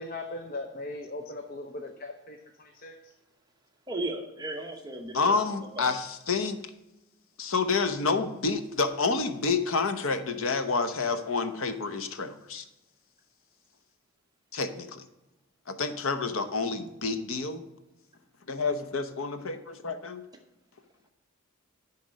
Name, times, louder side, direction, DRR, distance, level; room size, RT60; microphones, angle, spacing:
voice 1, 0.0-3.1, left 2 dB, 40° left, 4 dB, 0.7 m, -39 dB
voice 2, 3.9-6.0, right 1 dB, 20° right, 3 dB, 0.9 m, -36 dB
voice 3, 5.1-6.6 7.4-12.6 14.5-15.0 15.7-17.6 18.5-20.2, left 4 dB, 70° left, 9 dB, 0.9 m, -29 dB
10.5 x 4.3 x 6.4 m, 0.97 s
head